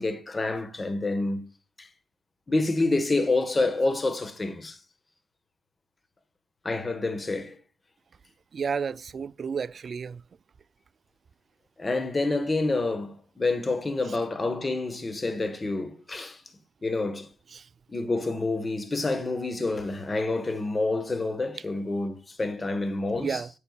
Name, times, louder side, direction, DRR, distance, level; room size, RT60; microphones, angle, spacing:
voice 1, 0.0-1.5 1.8-1.9 2.5-4.8 6.6-7.6 11.8-16.4 16.8-17.3 17.9-23.4, left 2 dB, 25° left, 1.3 m, -28 dB
voice 2, 8.5-10.2 17.5-17.6 23.2-23.5, right 6 dB, 45° right, 0.3 m, -31 dB
9.4 x 6.7 x 2.3 m
cardioid pair, 90°, 0 cm